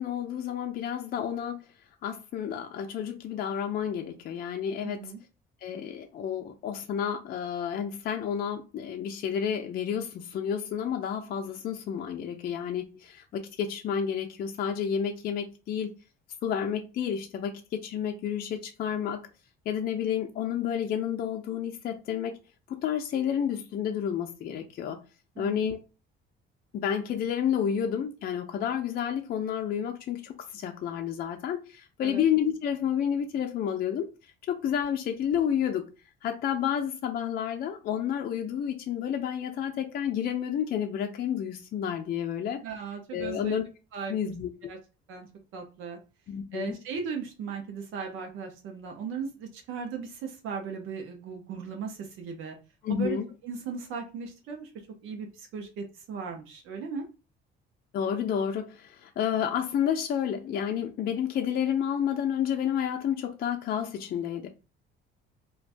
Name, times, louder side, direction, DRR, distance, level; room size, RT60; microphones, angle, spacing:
voice 1, 0.0-1.6 2.0-5.0 5.6-15.9 16.4-19.2 19.7-22.4 22.8-25.0 25.4-25.8 26.7-34.1 34.5-35.8 36.2-42.6 43.1-43.6 44.1-44.5 46.3-46.8 52.8-53.3 57.9-64.5, left 8 dB, 50° left, 0.5 m, -30 dB
voice 2, 4.8-5.2 25.4-25.7 32.0-32.2 42.6-43.6 43.9-44.3 44.6-44.8 45.1-45.3 45.5-46.0 46.5-52.6 52.9-54.7 55.0-57.1, right 5 dB, 75° right, 0.7 m, -37 dB
2.5 x 2.3 x 3.3 m
cardioid pair, 120°, 20 cm